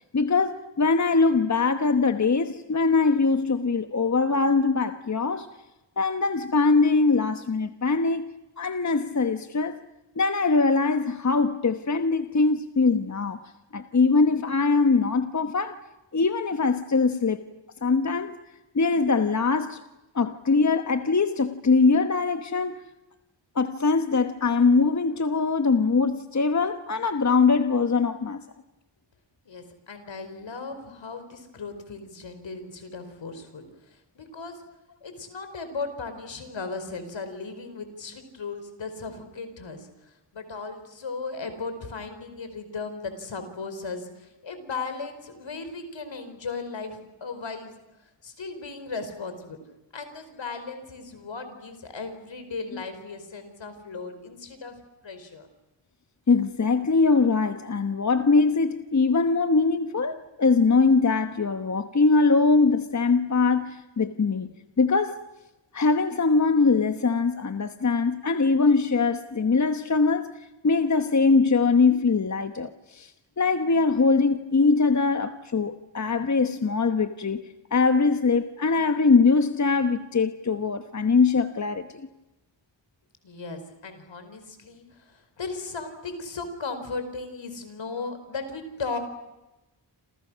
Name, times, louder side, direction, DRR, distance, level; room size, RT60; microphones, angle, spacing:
voice 1, 0.1-5.5 6.0-8.3 8.6-9.8 10.2-15.8 16.1-17.4 17.8-18.4 18.7-19.8 20.1-22.8 23.5-28.4 56.3-64.5 64.8-65.3 65.7-70.3 70.6-73.1 73.4-77.4 77.7-82.1, left 4 dB, 40° left, 1.2 m, -22 dB
voice 2, 29.4-33.6 34.1-34.6 35.0-47.8 48.2-49.6 49.9-54.8 55.0-55.5 83.2-89.0, left 4 dB, 75° left, 4.9 m, -36 dB
29.0 x 27.0 x 6.4 m
wide cardioid pair, 145°, 45 cm